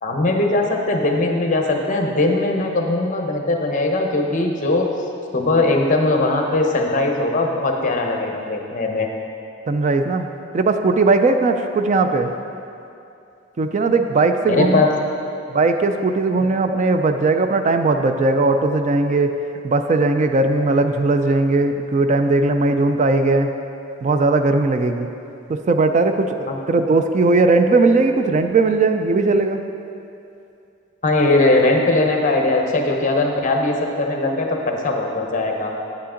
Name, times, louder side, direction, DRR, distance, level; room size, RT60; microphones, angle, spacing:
voice 1, 0.0-4.9 5.3-9.1 14.5-14.9 26.5-26.6 31.0-35.7, left 2 dB, 40° left, 2 dB, 0.9 m, -20 dB
voice 2, 9.7-10.3 10.5-12.3 13.6-14.8 15.5-19.3 19.6-23.5 24.0-25.1 25.5-29.6, right 3 dB, 40° right, 7 dB, 0.4 m, -18 dB
8.9 x 8.4 x 3.8 m, 2.7 s
head